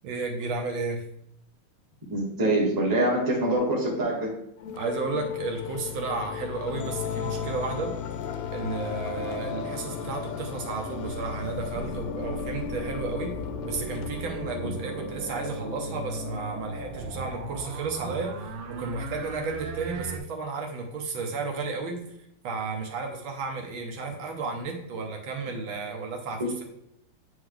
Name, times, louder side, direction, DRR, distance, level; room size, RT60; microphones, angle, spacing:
voice 1, 0.0-1.0 4.7-7.9 8.5-13.3 13.6-22.2 22.4-26.6, right 4 dB, 70° right, 2 dB, 1.6 m, -33 dB
voice 2, 2.1-4.3 26.4-26.5, right 1 dB, 10° right, -3 dB, 1.1 m, -25 dB
sound 1, 4.6-17.5, left 7 dB, 75° left, 1.2 m, -35 dB
sound 2, 10.9-20.2, right 3 dB, 90° right, 1.7 m, -38 dB
8.8 x 3.2 x 3.7 m, 0.77 s
omnidirectional pair, 2.4 m